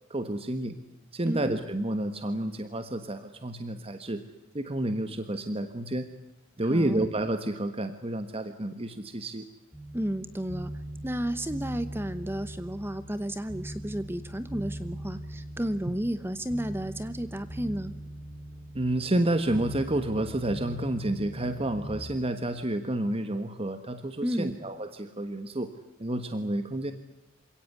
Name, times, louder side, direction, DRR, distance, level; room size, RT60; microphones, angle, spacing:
voice 1, 0.1-0.8 1.1-4.2 4.5-6.1 6.6-9.4 18.7-25.7 26.0-26.9, right 1 dB, 30° right, 9 dB, 1.4 m, -30 dB
voice 2, 1.3-1.6 6.6-7.0 9.9-10.7 11.0-17.9 24.2-24.6, equal, 10° right, 12 dB, 1.0 m, -32 dB
sound 1, 9.7-22.0, right 1 dB, 5° left, 6.3 m, -41 dB
28.0 x 17.5 x 9.7 m, 0.99 s
head